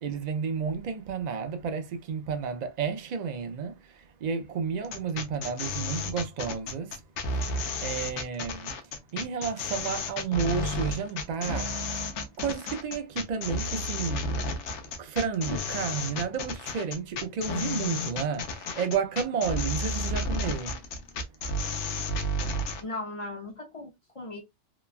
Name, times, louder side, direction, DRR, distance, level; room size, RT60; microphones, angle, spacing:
voice 1, 0.0-7.0 7.3-8.7 9.1-12.1 12.4-14.4 15.0-20.8, right 6 dB, 80° right, 0.3 m, -32 dB
sound 1, 4.8-22.8, left 2 dB, 70° left, 0.9 m, -32 dB
voice 2, 22.8-24.4, left 2 dB, 45° left, 0.4 m, -37 dB
3.0 x 2.2 x 2.3 m
omnidirectional pair, 1.3 m